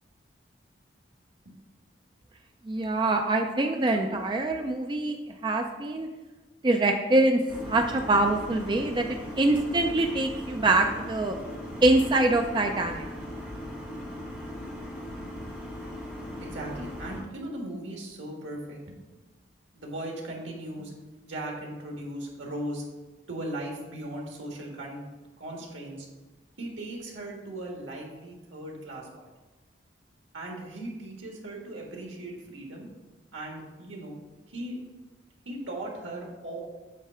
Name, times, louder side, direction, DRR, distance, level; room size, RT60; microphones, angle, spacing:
voice 1, 2.6-5.2 5.4-6.1 6.6-11.4 11.8-13.1, right 2 dB, 25° right, 4 dB, 0.4 m, -24 dB
sound 1, 7.5-17.2, equal, 10° right, 1.8 m, -39 dB
voice 2, 16.4-19.0 19.7-20.9 21.2-22.8 23.3-25.0 25.4-26.1 26.6-29.3 30.3-32.9 33.3-34.2 34.5-34.8 35.4-36.6, right 1 dB, 85° right, 0 dB, 1.7 m, -38 dB
8.2 x 3.2 x 5.7 m, 1.2 s
head